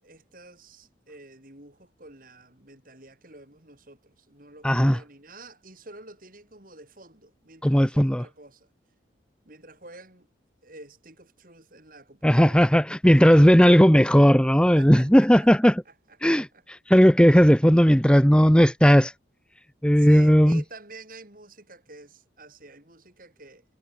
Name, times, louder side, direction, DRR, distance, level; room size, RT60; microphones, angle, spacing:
voice 1, 0.0-8.7 9.5-10.3 10.6-12.7 14.7-15.5 15.9-16.0 16.3-16.4 17.8-17.9 20.0-23.6, right 2 dB, 50° right, 7.4 m, -48 dB
voice 2, 4.6-5.0 7.6-8.3 12.2-15.8 16.2-19.1 19.8-20.6, equal, 5° left, 1.3 m, -17 dB
head